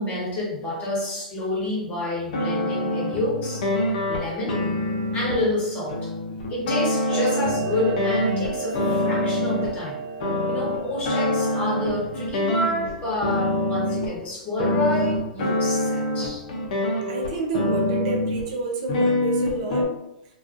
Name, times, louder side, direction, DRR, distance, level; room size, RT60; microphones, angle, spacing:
voice 1, 0.0-3.7 4.1-4.6 5.1-6.1 6.5-10.0 10.5-16.4, left 1 dB, 30° left, -4 dB, 1.1 m, -28 dB
sound 1, 2.2-9.8 10.2-12.9 13.2-14.1 14.6-18.5 18.9-19.8, left 1 dB, 65° left, 0.6 m, -25 dB
Clock, 7.1-12.1, right 6 dB, 15° right, 1.1 m, -33 dB
voice 2, 17.1-19.9, right 2 dB, 55° right, 1 dB, 0.6 m, -29 dB
2.4 x 2.3 x 2.5 m, 0.88 s
hypercardioid pair, 110°, 4 cm